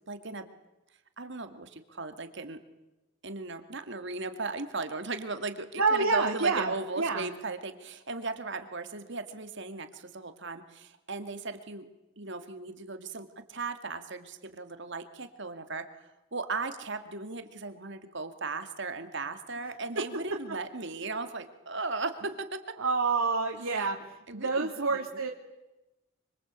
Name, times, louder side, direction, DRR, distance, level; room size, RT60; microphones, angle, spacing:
voice 1, 0.1-0.5 1.2-2.6 3.2-11.8 12.2-22.8 24.3-25.2, right 3 dB, 60° right, 8 dB, 2.3 m, -37 dB
voice 2, 5.8-7.3 22.8-24.0 24.3-25.3, right 4 dB, 90° right, 1 dB, 2.5 m, -28 dB
26.0 x 25.5 x 8.3 m, 0.98 s
head